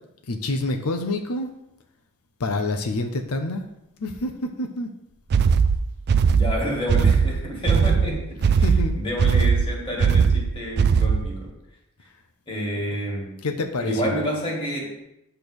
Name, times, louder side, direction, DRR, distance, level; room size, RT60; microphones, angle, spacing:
voice 1, 0.3-1.5 2.4-3.7 4.0-4.9 8.6-9.0 13.4-14.1, left 2 dB, 90° left, 5 dB, 0.7 m, -27 dB
sound 1, 5.3-11.4, right 6 dB, 50° right, 0.3 m, -19 dB
voice 2, 6.3-8.6 9.0-11.5 12.5-13.4 13.8-15.0, equal, 25° left, -2 dB, 1.9 m, -29 dB
8.8 x 3.4 x 6.1 m, 0.85 s
head